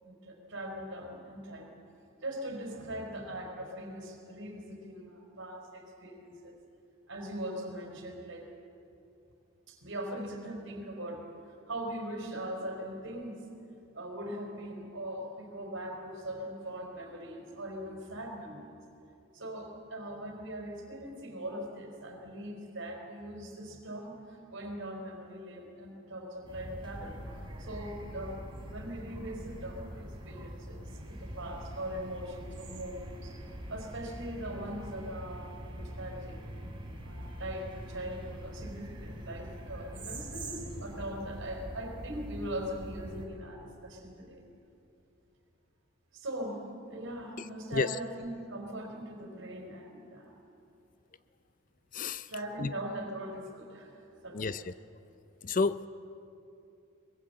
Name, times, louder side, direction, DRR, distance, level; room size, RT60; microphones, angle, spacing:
voice 1, 0.0-1.7 2.2-6.6 7.1-8.5 9.7-11.2 11.7-13.4 13.9-18.8 19.3-27.2 27.6-33.4 33.7-36.4 37.0-44.4 46.1-50.3 52.3-54.0 54.2-54.7 55.5-55.6, right 1 dB, 60° right, 3 dB, 4.1 m, -41 dB
sound 1, 26.4-43.3, equal, 25° right, 3.3 m, -43 dB
voice 2, 51.9-52.3 52.6-52.7 54.3-54.7 55.4-55.9, left 4 dB, 40° left, 15 dB, 0.5 m, -30 dB
23.5 x 21.0 x 7.9 m, 2.7 s
head